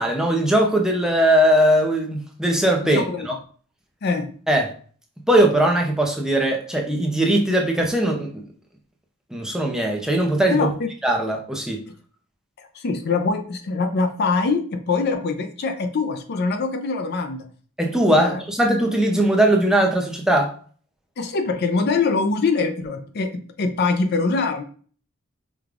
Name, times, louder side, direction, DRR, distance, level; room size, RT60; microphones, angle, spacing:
voice 1, 0.0-3.3 4.5-4.7 5.3-8.3 9.3-10.7 11.0-11.8 17.8-20.5, right 1 dB, 5° right, 1 dB, 0.6 m, -20 dB
voice 2, 2.8-3.3 4.0-4.3 10.5-10.9 12.6-17.5 18.2-18.4 21.2-24.6, left 4 dB, 45° left, 7 dB, 0.4 m, -23 dB
5.0 x 2.3 x 3.5 m, 0.43 s
head